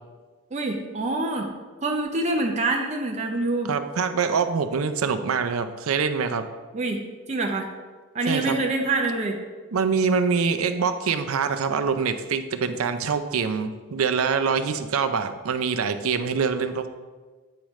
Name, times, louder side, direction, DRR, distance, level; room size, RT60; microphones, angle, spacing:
voice 1, 0.5-1.5 1.8-3.7 6.7-7.0 7.3-7.7 8.1-9.4, right 2 dB, 35° right, 2 dB, 0.5 m, -25 dB
voice 2, 3.7-6.4 8.3-8.6 9.7-16.9, right 5 dB, 85° right, 9 dB, 0.5 m, -24 dB
8.4 x 4.9 x 3.1 m, 1.4 s
head